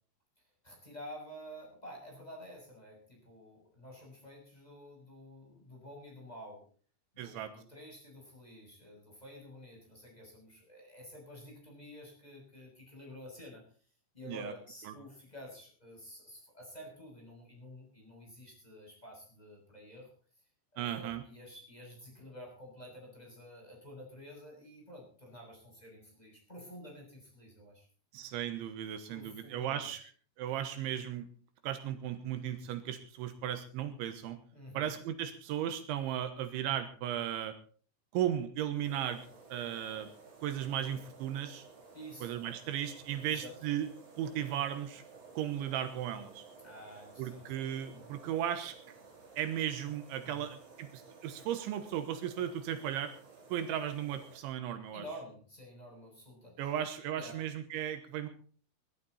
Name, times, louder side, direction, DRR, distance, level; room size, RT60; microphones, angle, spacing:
voice 1, 0.6-6.6 7.1-13.6 14.1-20.1 20.7-27.9 29.1-29.9 34.5-35.0 41.9-42.3 43.2-43.5 46.6-47.4 47.9-48.2 50.2-50.5 54.9-56.7 57.1-57.4, equal, 10° left, -2 dB, 6.4 m, -50 dB
voice 2, 7.2-7.5 14.3-14.5 14.9-15.0 20.8-21.2 28.1-30.0 30.4-31.3 31.6-34.4 34.7-37.5 38.1-39.2 39.5-40.1 40.4-41.7 42.2-43.9 44.2-45.0 45.4-46.4 47.2-48.8 49.4-53.1 53.5-55.0 56.6-58.3, right 10 dB, 80° right, 9 dB, 3.4 m, -36 dB
sound 1, 38.8-54.4, right 4 dB, 50° right, 5.7 m, -55 dB
21.5 x 11.5 x 4.2 m, 0.43 s
omnidirectional pair, 5.5 m